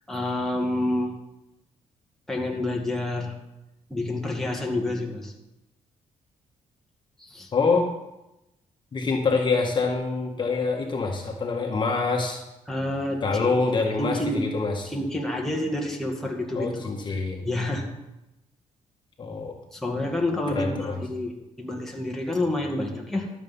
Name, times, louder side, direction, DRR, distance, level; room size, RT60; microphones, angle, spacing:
voice 1, 0.1-1.2 2.3-3.4 3.9-5.3 7.2-7.5 12.7-13.2 14.0-14.5 14.9-16.9 17.5-17.9 19.7-23.3, left 1 dB, 5° left, -1 dB, 2.0 m, -28 dB
voice 2, 7.5-7.9 8.9-12.4 13.2-14.9 16.5-17.4 19.2-19.6 20.5-21.0, left 4 dB, 35° left, 1 dB, 1.7 m, -25 dB
12.5 x 7.5 x 5.5 m, 0.93 s
cardioid pair, 120°, 13 cm